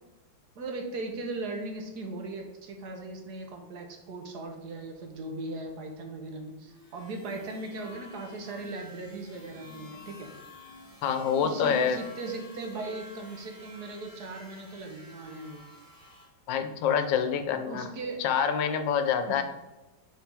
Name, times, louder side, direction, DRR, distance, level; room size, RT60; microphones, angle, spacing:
voice 1, 0.6-10.3 11.3-15.6 17.6-18.2 19.3-19.4, right 2 dB, 65° right, 3 dB, 1.6 m, -38 dB
sound 1, 6.7-16.3, left 1 dB, 30° right, 2.1 m, -50 dB
voice 2, 11.0-12.0 16.5-17.9 18.2-19.4, left 7 dB, 85° left, 9 dB, 1.4 m, -26 dB
6.6 x 4.3 x 4.8 m, 1.0 s
omnidirectional pair, 1.9 m